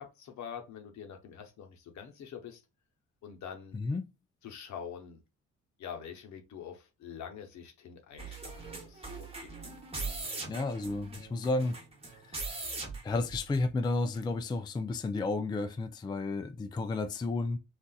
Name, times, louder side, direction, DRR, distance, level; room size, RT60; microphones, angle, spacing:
voice 1, 0.0-2.6 3.2-3.8 4.4-5.2 5.8-9.5, left 7 dB, 70° left, 0.8 m, -45 dB
voice 2, 3.7-4.1 10.5-11.8 12.1-12.7 13.0-17.6, left 3 dB, 15° left, 0.3 m, -32 dB
sound 1, 8.2-13.9 14.1-14.2, right 3 dB, 20° right, 1.0 m, -41 dB
4.0 x 2.4 x 2.3 m
cardioid pair, 90°, 30 cm